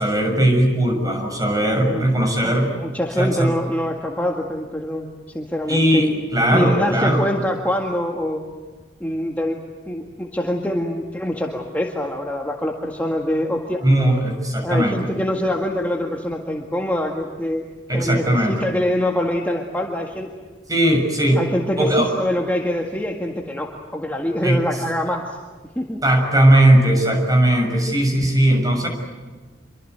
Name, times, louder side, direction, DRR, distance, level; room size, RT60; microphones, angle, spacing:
voice 1, 0.0-2.7 3.2-3.5 5.7-7.2 13.8-15.1 17.9-18.7 20.7-21.4 21.8-22.1 24.4-24.6 26.0-28.9, right 1 dB, 20° right, 3 dB, 6.6 m, -18 dB
voice 2, 1.8-5.1 5.3-6.1 6.5-8.4 9.0-9.6 9.9-13.8 14.6-17.6 17.9-20.3 21.4-25.4 25.8-26.0, left 1 dB, 10° left, 0 dB, 1.9 m, -24 dB
27.5 x 24.0 x 8.1 m, 1.3 s
head